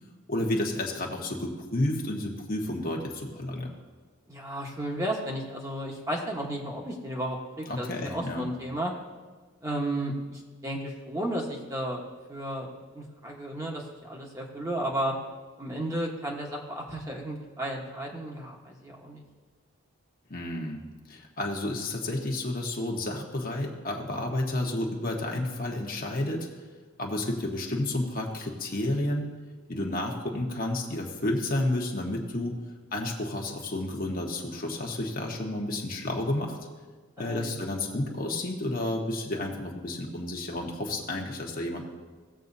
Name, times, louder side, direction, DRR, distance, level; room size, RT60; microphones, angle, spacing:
voice 1, 0.3-3.7 7.7-8.4 20.3-20.8 21.1-26.5 27.0-29.3 29.7-32.5 32.9-36.6 37.2-41.8, left 1 dB, 40° left, 0 dB, 1.2 m, -31 dB
voice 2, 4.3-8.9 9.6-12.0 12.3-12.7 12.9-15.1 15.6-19.2 37.2-37.5, right 1 dB, 15° right, -1 dB, 1.2 m, -33 dB
17.5 x 7.6 x 2.7 m, 1.4 s
head